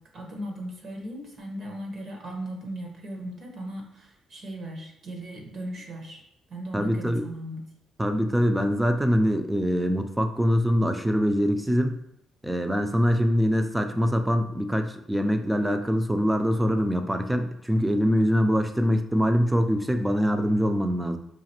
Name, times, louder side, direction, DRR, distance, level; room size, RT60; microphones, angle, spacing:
voice 1, 0.0-6.2 6.5-7.6, right 1 dB, 55° right, 1 dB, 1.1 m, -37 dB
voice 2, 6.7-7.3 8.0-11.9 12.4-21.2, equal, 10° right, 6 dB, 0.4 m, -24 dB
4.8 x 2.5 x 2.9 m, 0.73 s
cardioid pair, 90°, 0 cm